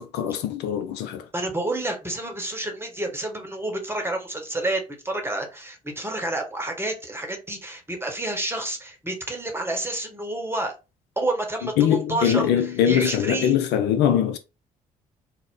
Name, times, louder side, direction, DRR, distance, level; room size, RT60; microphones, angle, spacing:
voice 1, 0.0-1.3 11.8-14.4, left 9 dB, 60° left, 0.4 m, -22 dB
voice 2, 1.3-10.7 11.2-13.6, right 2 dB, 10° right, 0.9 m, -29 dB
2.5 x 2.0 x 3.4 m
hypercardioid pair, 45°, 20 cm